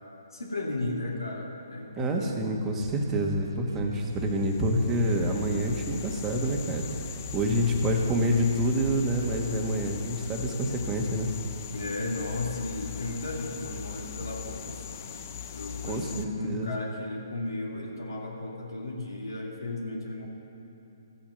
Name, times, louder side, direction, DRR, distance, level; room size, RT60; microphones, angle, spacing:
voice 1, 0.3-2.5 7.5-7.7 11.7-15.3 15.5-20.3, left 2 dB, 90° left, -2 dB, 2.7 m, -35 dB
voice 2, 2.0-6.8 7.3-11.3 15.9-16.7, equal, 15° right, 1 dB, 1.4 m, -27 dB
sound 1, 2.8-11.1, right 2 dB, 85° right, 2.0 m, -45 dB
sound 2, 4.1-16.3, left 9 dB, 40° left, 0.7 m, -40 dB
14.0 x 8.8 x 6.8 m, 3.0 s
hypercardioid pair, 140°, 2 cm